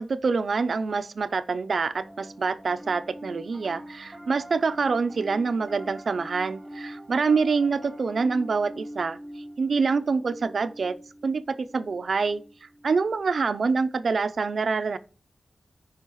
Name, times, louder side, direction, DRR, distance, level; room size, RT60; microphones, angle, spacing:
voice 1, 0.0-9.2 9.6-11.0 11.2-15.0, right 4 dB, 70° right, 0.5 m, -26 dB
Piano, 2.0-13.5, equal, 15° right, 1.2 m, -43 dB
14.5 x 4.9 x 3.1 m
wide cardioid pair, 115°, 0 cm